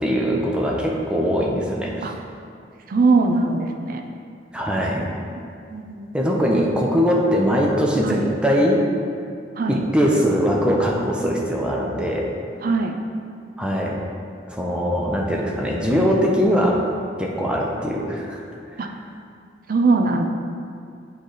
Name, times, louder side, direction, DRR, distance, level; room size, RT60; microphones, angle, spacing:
voice 1, 0.0-2.1 4.5-5.0 6.1-8.9 9.7-12.3 13.6-14.0 14.5-16.8 17.2-18.5 18.8-18.9, equal, 5° right, -2 dB, 0.6 m, -21 dB
voice 2, 2.9-4.0 4.9-5.0 5.3-5.4 5.7-6.4 8.0-8.3 9.6-9.8 12.6-12.9 18.8-18.9 19.7-20.3, right 3 dB, 50° right, 3 dB, 0.5 m, -21 dB
8.6 x 3.3 x 3.9 m, 2.3 s
head